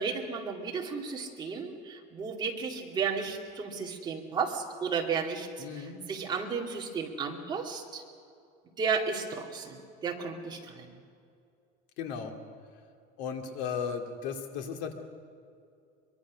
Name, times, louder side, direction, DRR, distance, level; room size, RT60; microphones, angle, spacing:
voice 1, 0.0-5.5 5.7-8.0 8.8-10.9, right 5 dB, 20° right, 0 dB, 2.4 m, -33 dB
voice 2, 5.6-6.0 12.0-12.3 13.2-14.9, left 6 dB, 60° left, 4 dB, 2.4 m, -35 dB
23.5 x 23.0 x 6.3 m, 2.4 s
cardioid pair, 170°, 21 cm